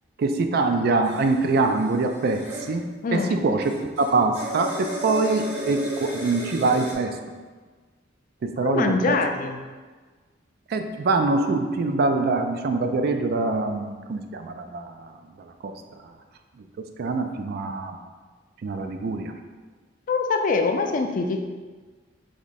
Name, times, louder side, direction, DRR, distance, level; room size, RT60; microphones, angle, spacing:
voice 1, 0.2-7.2 8.4-9.2 10.7-15.1 15.6-15.7 17.0-18.0 18.6-19.3, right 3 dB, 55° right, 6 dB, 0.3 m, -24 dB
sound 1, 1.0-2.7 3.6-6.9, equal, 35° right, 1.0 m, -34 dB
voice 2, 3.0-3.3 8.6-9.6 20.1-21.4, left 4 dB, 45° left, 5 dB, 0.3 m, -24 dB
3.6 x 3.0 x 4.1 m, 1.4 s
head